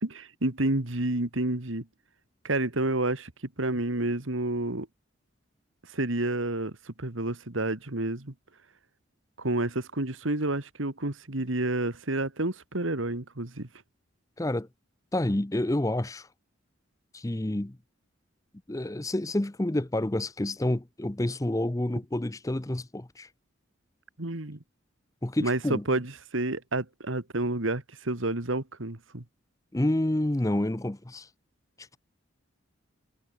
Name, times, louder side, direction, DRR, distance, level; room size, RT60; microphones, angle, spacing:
voice 1, 0.0-1.9 2.4-3.3 3.6-4.9 5.9-8.3 9.4-13.7 24.2-24.6 25.4-29.2, right 2 dB, 80° right, 2.2 m, -29 dB
voice 2, 14.4-14.7 15.1-16.3 17.1-17.8 18.7-23.3 25.2-25.8 29.7-31.3, left 1 dB, 15° left, 0.6 m, -28 dB
head